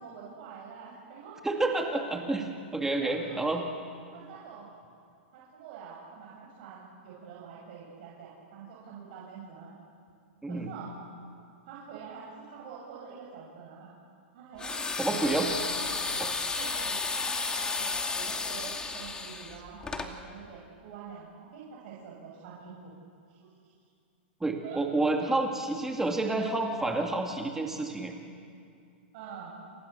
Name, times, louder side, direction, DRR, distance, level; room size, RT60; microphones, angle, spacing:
voice 1, 0.0-1.4 2.3-2.4 3.0-3.6 4.1-4.7 5.3-9.7 10.4-11.0 11.7-13.9 14.3-22.9 23.3-23.4 23.6-23.7 24.6-24.8 29.1-29.6, right 6 dB, 55° right, -5 dB, 7.2 m, -46 dB
voice 2, 1.4-2.4 2.7-3.6 10.4-10.7 15.0-15.5 24.4-28.1, right 2 dB, 5° right, 2 dB, 2.4 m, -29 dB
sound 1, 14.6-20.1, left 4 dB, 15° left, 2.6 m, -32 dB
29.0 x 29.0 x 7.1 m, 2.4 s
hypercardioid pair, 125°, 6 cm